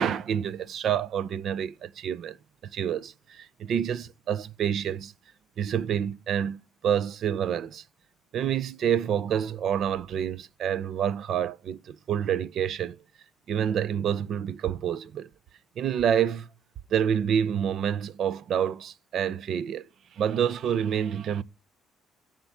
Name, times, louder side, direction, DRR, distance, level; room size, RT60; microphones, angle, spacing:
voice 1, 0.0-2.4 2.6-5.1 5.6-7.8 8.3-13.0 13.5-15.3 15.8-16.5 16.9-19.9 20.2-21.4, right 8 dB, 55° right, 0.5 m, -28 dB
9.7 x 3.7 x 5.7 m
cardioid pair, 140°, 0 cm